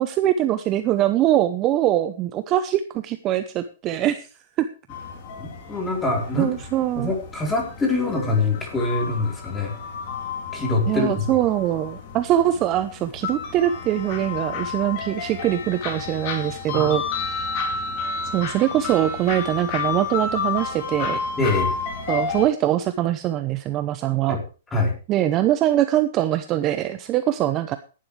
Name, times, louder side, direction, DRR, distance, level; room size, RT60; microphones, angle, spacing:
voice 1, 0.0-4.3 4.6-4.7 6.4-7.1 10.9-17.0 18.3-21.2 22.1-24.4 25.1-27.8, right 12 dB, 20° right, 10 dB, 0.8 m, -22 dB
sound 1, 4.9-22.4, left 5 dB, 35° left, 4.2 m, -31 dB
voice 2, 5.4-6.5 7.0-9.8 10.5-11.2 16.7-17.0 21.4-21.8 24.3-24.4 24.7-25.0, left 2 dB, 10° left, 1 dB, 4.2 m, -24 dB
17.5 x 11.5 x 3.3 m, 0.34 s
hypercardioid pair, 170°, 0 cm